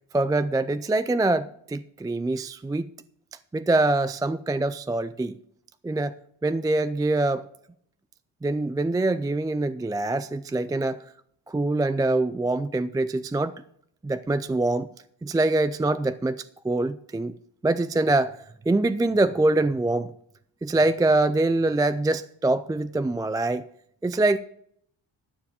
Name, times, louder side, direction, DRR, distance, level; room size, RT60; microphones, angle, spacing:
voice 1, 0.1-2.9 3.5-5.4 5.8-6.1 6.4-7.4 8.4-11.0 11.5-13.6 14.0-14.9 15.2-17.3 17.6-18.4 18.7-20.1 20.6-23.6 24.0-24.4, right 2 dB, 10° right, 0.3 m, -24 dB
13.0 x 4.6 x 7.3 m
cardioid pair, 70°, 46 cm